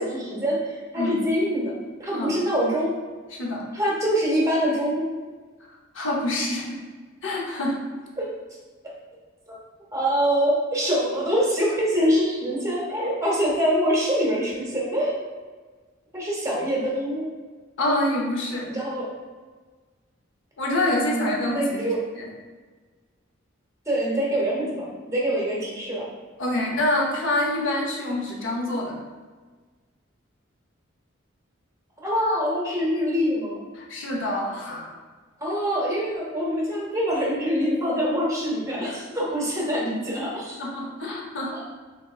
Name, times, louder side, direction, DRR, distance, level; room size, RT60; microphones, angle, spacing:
voice 1, 0.0-1.7 2.0-2.9 3.7-5.1 8.2-8.3 9.9-15.2 16.1-17.3 18.7-19.1 21.0-21.3 21.5-22.0 23.9-26.1 32.0-33.6 35.4-40.6 41.5-41.6, equal, 15° right, -5 dB, 0.8 m, -24 dB
voice 2, 3.3-3.6 5.9-6.8 7.2-7.8 17.8-18.7 20.6-21.9 22.2-22.3 26.4-29.0 33.8-34.9 38.8-39.0 40.6-41.5, left 1 dB, 70° left, -1 dB, 0.7 m, -26 dB
3.5 x 3.1 x 2.3 m, 1.4 s
head